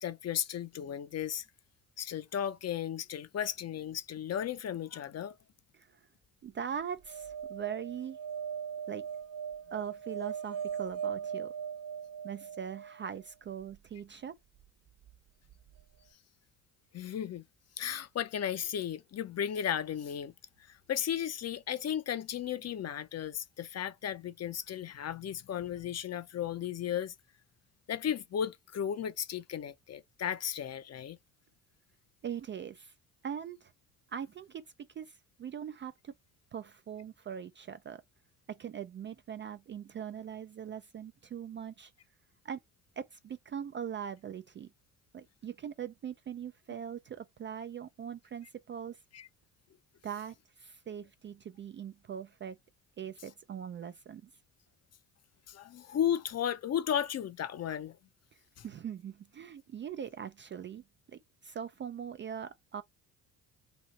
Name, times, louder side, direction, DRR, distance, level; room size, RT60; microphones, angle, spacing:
voice 1, 0.0-1.4 2.0-5.4 16.9-17.4 17.8-20.3 20.7-27.1 27.9-31.2 49.1-49.3 55.5-58.0 58.6-58.7, left 9 dB, 35° left, 0.6 m, -35 dB
voice 2, 6.4-8.2 8.9-9.0 9.7-11.5 12.2-14.4 32.2-32.9 33.2-33.7 34.1-34.6 35.0-36.1 36.5-38.0 38.5-41.9 42.4-42.6 43.0-44.7 45.1-49.0 50.0-52.6 53.0-54.3 58.6-62.8, right 8 dB, 30° right, 0.4 m, -41 dB
sound 1, 7.0-13.2 15.5-15.6 15.8-15.9, right 8 dB, 50° right, 1.2 m, -39 dB
3.0 x 2.7 x 4.1 m
hypercardioid pair, 55°, 43 cm